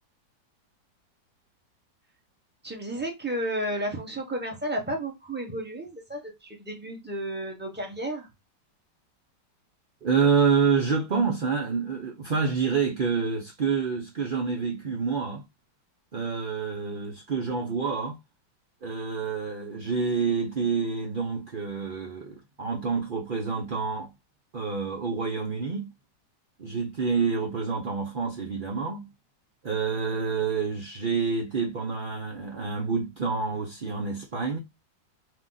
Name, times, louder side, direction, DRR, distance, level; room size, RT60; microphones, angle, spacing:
voice 1, 2.6-8.3, right 1 dB, 5° right, 1.0 m, -32 dB
voice 2, 10.0-15.4 16.1-18.2 18.8-24.1 24.5-25.9 26.6-29.1 29.6-34.6, right 5 dB, 50° right, 0.6 m, -27 dB
4.9 x 2.5 x 3.9 m
omnidirectional pair, 1.9 m